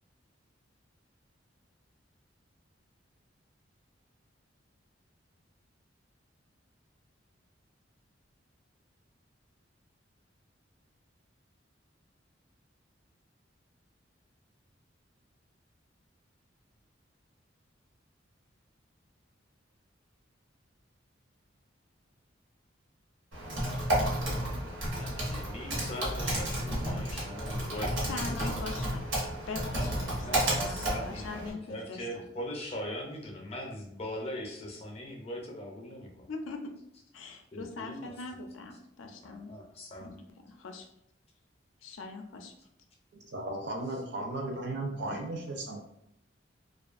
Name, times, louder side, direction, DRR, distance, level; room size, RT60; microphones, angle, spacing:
Typing, 23.3-31.5, right 1 dB, 85° right, 0.9 m, -32 dB
voice 1, 25.0-28.6 29.7-36.3 37.5-38.1 39.2-40.1 41.9-42.0, left 1 dB, 35° left, 0 dB, 0.5 m, -41 dB
voice 2, 28.1-29.0 29.5-32.2 36.3-36.7 37.1-39.5 40.0-40.9 41.8-42.5 45.1-45.3, left 3 dB, 85° left, 4 dB, 0.4 m, -42 dB
voice 3, 43.3-45.8, right 2 dB, 60° right, 2 dB, 0.5 m, -35 dB
2.5 x 2.3 x 2.4 m, 0.76 s
head